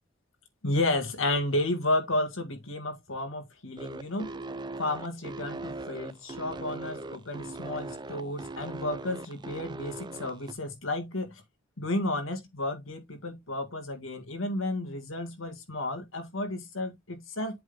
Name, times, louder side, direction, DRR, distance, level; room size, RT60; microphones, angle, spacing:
voice 1, 0.6-4.3 4.8-11.4 11.8-17.6, left 2 dB, 70° left, 1.9 m, -32 dB
sound 1, 3.8-10.5, right 2 dB, 20° right, 0.4 m, -39 dB
7.9 x 3.6 x 3.9 m
head